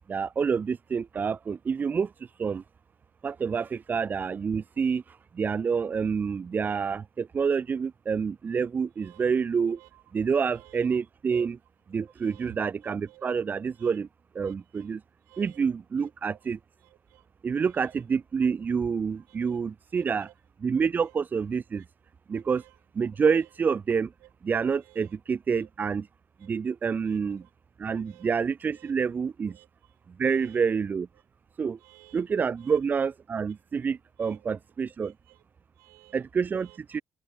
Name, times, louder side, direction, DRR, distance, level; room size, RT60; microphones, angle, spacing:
voice 1, 0.1-2.1 2.4-2.6 3.2-9.8 10.1-11.6 11.9-14.1 14.3-15.0 15.4-16.6 17.4-20.3 20.6-21.8 22.3-22.6 22.9-24.1 24.4-26.1 26.4-27.4 27.8-29.6 30.2-31.1 31.6-31.8 32.1-35.1 36.1-37.0, right 6 dB, 40° right, 2.7 m, -28 dB
voice 2, 9.7-10.0 10.5-10.9 11.3-11.5 12.2-13.2 13.8-14.0 14.4-14.9 15.3-15.6 16.0-16.4 16.8-17.2 17.6-18.0 19.3-19.6 19.9-20.3 21.0-21.1 22.3-22.7 24.2-24.3 24.8-25.1 25.6-25.7 26.4-26.5 27.1-27.5 28.0-28.3 28.7-28.9 29.5-29.7 30.3-30.6 31.8-32.2 32.6-32.8 34.2-34.5 35.0-35.4 35.8-36.2 36.6-36.8, right 20 dB, 65° right, 6.4 m, -55 dB
figure-of-eight pair, 45°, 5 cm